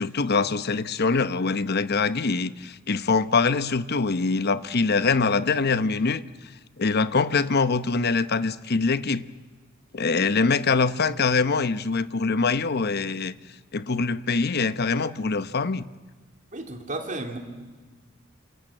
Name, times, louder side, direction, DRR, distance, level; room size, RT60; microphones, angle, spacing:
voice 1, 0.0-6.2 6.8-9.2 9.9-13.3 13.7-15.9, left 4 dB, 50° left, 13 dB, 0.9 m, -24 dB
voice 2, 16.5-17.4, right 2 dB, 40° right, 4 dB, 3.1 m, -33 dB
27.5 x 26.5 x 7.8 m, 1.3 s
head